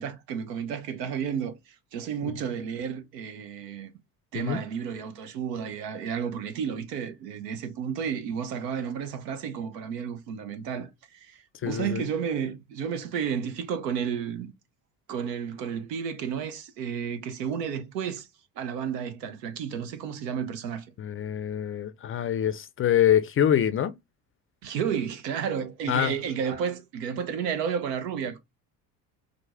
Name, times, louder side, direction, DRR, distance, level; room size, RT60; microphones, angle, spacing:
voice 1, 0.0-3.9 4.3-14.5 15.1-18.3 18.6-20.9 24.6-28.4, right 7 dB, 80° right, 0.9 m, -32 dB
voice 2, 11.6-12.0 21.0-23.9 25.9-26.1, left 10 dB, 30° left, 0.4 m, -25 dB
4.8 x 2.1 x 3.6 m
hypercardioid pair, 65°, 48 cm